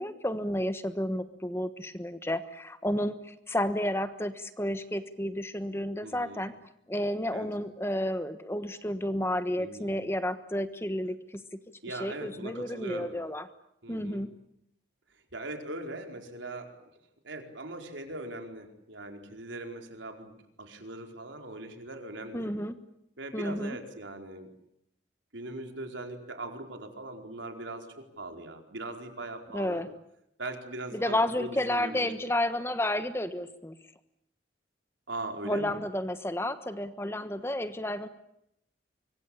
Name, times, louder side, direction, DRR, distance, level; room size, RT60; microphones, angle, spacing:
voice 1, 0.0-6.5 6.9-11.6 11.9-13.5 13.9-14.3 22.3-22.8 23.3-23.8 29.5-29.9 30.9-33.8 35.4-38.1, left 1 dB, 15° left, 11 dB, 1.3 m, -31 dB
voice 2, 6.0-6.4 7.3-7.5 9.6-10.0 11.8-13.1 13.8-14.2 15.3-16.7 17.2-20.3 20.6-22.5 23.2-24.5 25.3-29.8 30.4-32.1 35.1-35.8, right 2 dB, 90° right, 4 dB, 4.6 m, -40 dB
25.0 x 23.5 x 8.7 m, 0.77 s
head